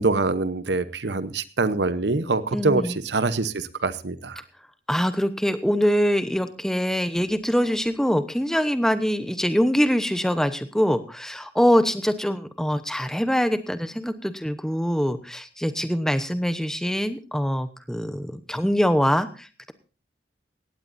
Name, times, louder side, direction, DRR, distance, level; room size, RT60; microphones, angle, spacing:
voice 1, 0.0-4.4, right 3 dB, 80° right, 13 dB, 0.9 m, -24 dB
voice 2, 2.5-3.0 4.9-19.7, equal, 5° left, 10 dB, 0.9 m, -24 dB
18.0 x 16.0 x 2.7 m, 0.35 s
head